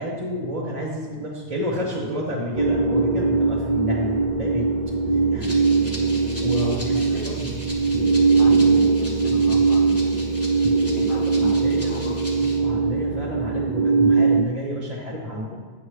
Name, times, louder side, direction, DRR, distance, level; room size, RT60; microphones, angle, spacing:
voice 1, 0.0-4.7 5.3-6.0 6.4-7.6 11.1-15.6, equal, 35° right, -6 dB, 1.1 m, -30 dB
sound 1, 2.6-14.4, right 4 dB, 50° right, 0.7 m, -21 dB
Rattle (instrument), 5.4-12.6, equal, 10° left, 1.2 m, -39 dB
voice 2, 6.6-7.4 8.4-10.5 11.0-12.2, left 3 dB, 55° left, 2 dB, 0.7 m, -36 dB
9.5 x 7.2 x 3.2 m, 1.5 s
omnidirectional pair, 1.2 m